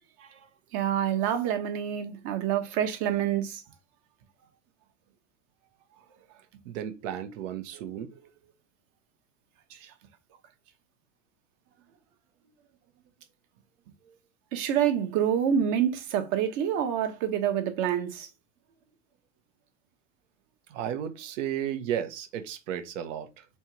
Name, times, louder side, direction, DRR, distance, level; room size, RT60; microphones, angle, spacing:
voice 1, 0.7-3.6 9.7-9.9 14.5-18.3, right 9 dB, 50° right, 1.1 m, -27 dB
voice 2, 6.6-8.1 14.0-14.1 20.7-23.4, right 10 dB, 75° right, 1.0 m, -34 dB
3.4 x 2.9 x 4.4 m
supercardioid pair, 115°, 37 cm